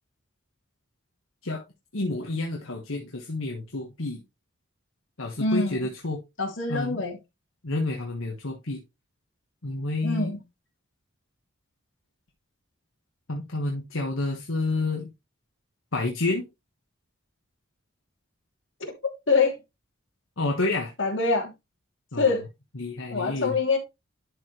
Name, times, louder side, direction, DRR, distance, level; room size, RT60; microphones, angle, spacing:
voice 1, 1.9-4.2 5.2-6.2 6.7-7.0 7.6-8.8 9.6-10.3 13.3-15.1 15.9-16.5 20.4-20.9 22.1-22.4 22.7-23.6, left 2 dB, 80° left, 1.5 m, -29 dB
voice 2, 5.4-5.8 6.4-7.2 10.0-10.4 18.8-18.9 19.3-19.5 21.0-21.5 22.2-22.4 23.1-23.8, left 4 dB, 65° left, 3.0 m, -24 dB
11.5 x 5.0 x 3.2 m
head